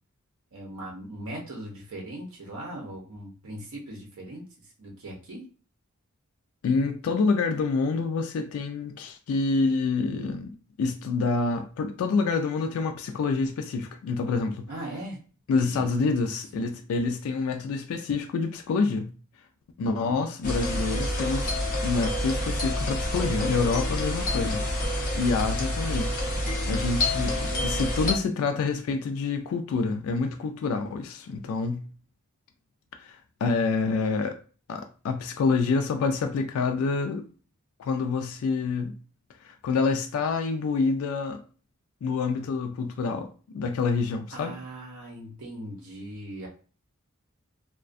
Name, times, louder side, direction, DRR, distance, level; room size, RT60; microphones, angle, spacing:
voice 1, 0.5-5.4 14.7-15.2 15.5-16.1 19.9-20.1 24.3-24.5 27.2-27.8 44.3-46.5, right 1 dB, 80° right, 0.7 m, -39 dB
voice 2, 6.6-14.7 15.5-19.1 19.8-21.6 21.8-31.9 33.0-34.4 34.7-37.2 37.8-38.9 39.4-41.4 42.0-44.6, left 4 dB, 80° left, 0.3 m, -27 dB
sound 1, 20.4-28.1, left 1 dB, 40° left, 0.7 m, -28 dB
2.4 x 2.1 x 2.4 m
head